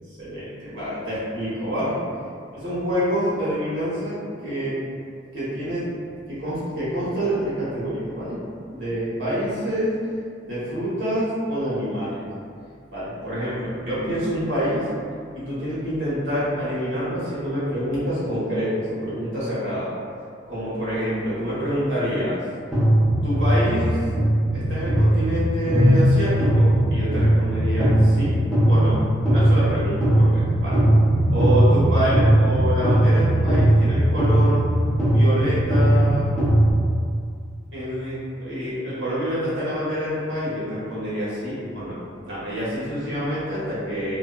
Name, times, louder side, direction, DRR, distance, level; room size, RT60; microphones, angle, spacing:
voice 1, 0.2-1.9 2.5-4.1 4.4-4.8 5.3-5.9 6.3-8.4 8.7-10.0 10.4-12.2 12.9-14.9 15.3-19.9 20.5-22.4 23.2-24.0 24.5-28.4 28.7-29.0 29.2-30.8 31.3-36.3 37.7-42.0 42.3-44.2, equal, 85° right, -10 dB, 1.1 m, -27 dB
sound 1, 22.7-36.7, right 1 dB, 5° left, 0.5 m, -19 dB
2.6 x 2.1 x 2.3 m, 2.2 s
head